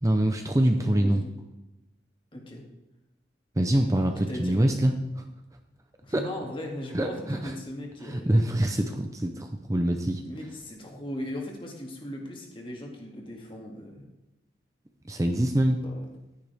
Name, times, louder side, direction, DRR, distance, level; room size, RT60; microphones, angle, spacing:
voice 1, 0.0-1.2 3.6-5.2 6.1-6.2 6.9-7.5 8.0-10.2 15.0-15.8, right 1 dB, 20° right, 4 dB, 0.6 m, -25 dB
voice 2, 0.8-1.3 2.3-2.7 4.3-4.6 6.0-8.3 10.2-14.0 15.8-16.1, left 1 dB, 30° left, 0 dB, 2.1 m, -38 dB
11.5 x 10.0 x 3.5 m, 0.99 s
head